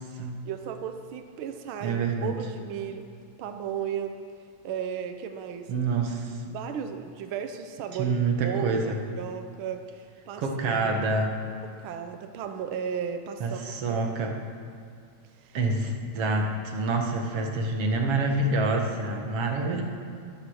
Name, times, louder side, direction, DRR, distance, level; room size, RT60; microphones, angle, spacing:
voice 1, 0.4-3.1 3.4-4.2 4.6-5.9 6.5-8.2 8.4-10.4 10.7-11.0 11.8-13.6 13.9-14.1 15.4-15.6, right 8 dB, 80° right, 7 dB, 1.1 m, -35 dB
voice 2, 1.8-2.3 5.7-6.4 8.0-9.0 10.4-11.3 13.4-14.3 15.5-19.8, right 3 dB, 55° right, 2 dB, 2.3 m, -27 dB
23.0 x 8.4 x 6.4 m, 2.2 s
omnidirectional pair, 3.4 m